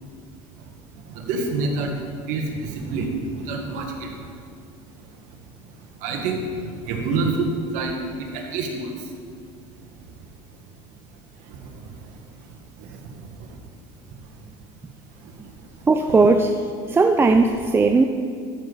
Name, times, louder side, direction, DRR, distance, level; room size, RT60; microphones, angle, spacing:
voice 1, 1.0-4.3 5.0-9.1 9.8-10.3 10.6-10.7 11.4-13.6 15.2-15.8, right 3 dB, 70° right, 2 dB, 1.6 m, -29 dB
voice 2, 15.9-16.6 16.9-18.0, right 3 dB, 15° right, 6 dB, 0.4 m, -17 dB
13.5 x 6.6 x 4.0 m, 2.2 s
supercardioid pair, 105°, 14 cm